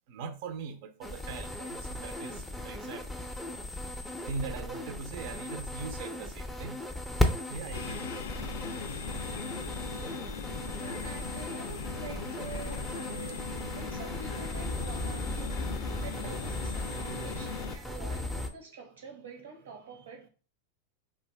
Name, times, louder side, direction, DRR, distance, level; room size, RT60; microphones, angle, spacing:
voice 1, 0.1-3.0 4.3-6.8 7.5-8.1 16.2-16.5, right 5 dB, 60° right, 0.4 m, -41 dB
sound 1, 1.0-18.5, left 1 dB, ahead, 0.4 m, -36 dB
sound 2, 7.7-17.8, left 6 dB, 80° left, 0.3 m, -40 dB
voice 2, 10.3-20.3, right 5 dB, 80° right, 0.8 m, -47 dB
2.5 x 2.1 x 3.2 m
hypercardioid pair, 105°, 0 cm